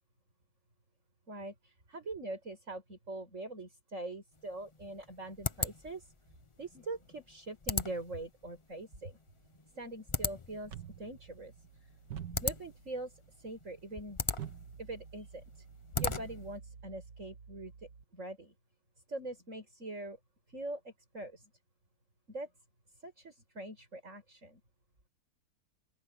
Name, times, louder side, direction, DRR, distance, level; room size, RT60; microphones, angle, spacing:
voice 1, 1.3-6.1 6.6-9.2 9.7-10.7 11.0-11.5 11.8-11.9 12.4-14.2 14.8-15.7 16.0-18.5 19.1-20.2 20.5-21.5 22.3-22.5 23.0-24.6, right 2 dB, 45° right, 7.2 m, -43 dB
sound 1, 4.4-16.6, left 4 dB, 25° left, 0.6 m, -39 dB
sound 2, 10.6-18.0, right 8 dB, 80° right, 2.1 m, -48 dB
open air
omnidirectional pair, 1.8 m